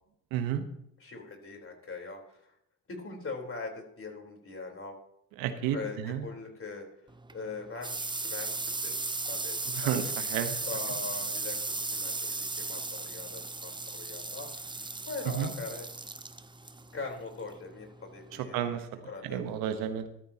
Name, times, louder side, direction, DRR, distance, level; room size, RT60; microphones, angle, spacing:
voice 1, 0.3-0.6 5.4-6.2 9.7-10.6 15.3-15.5 18.3-18.9 19.2-20.1, right 9 dB, 85° right, 9 dB, 1.2 m, -32 dB
voice 2, 1.0-2.5 2.9-5.0 5.7-6.9 7.3-9.0 9.3-10.0 10.7-15.9 16.9-18.8 19.1-19.4, left 3 dB, 40° left, 1 dB, 4.1 m, -41 dB
sound 1, 7.1-18.4, right 3 dB, 15° right, 0.8 m, -36 dB
14.0 x 13.0 x 3.0 m, 0.76 s
supercardioid pair, 60°, 34 cm